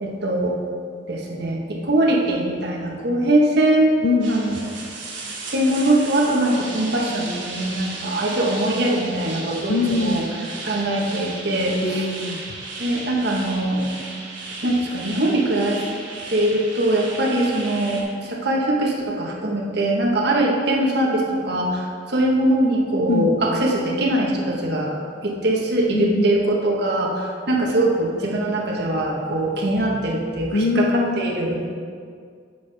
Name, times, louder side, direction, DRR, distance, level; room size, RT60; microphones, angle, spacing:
voice 1, 0.0-0.6 1.1-4.0 4.3-4.6 5.5-10.2 10.6-12.1 12.8-13.9 14.6-15.8 16.3-24.9 25.2-31.7, right 1 dB, 60° right, -1 dB, 1.5 m, -22 dB
voice 2, 4.0-4.7 9.7-10.3 11.8-12.6 23.1-23.4 25.9-26.4 30.5-31.2, left 3 dB, 50° left, 8 dB, 0.5 m, -22 dB
sound 1, 4.2-18.0, right 3 dB, 85° right, 2.4 m, -35 dB
11.5 x 7.4 x 3.6 m, 2.1 s
head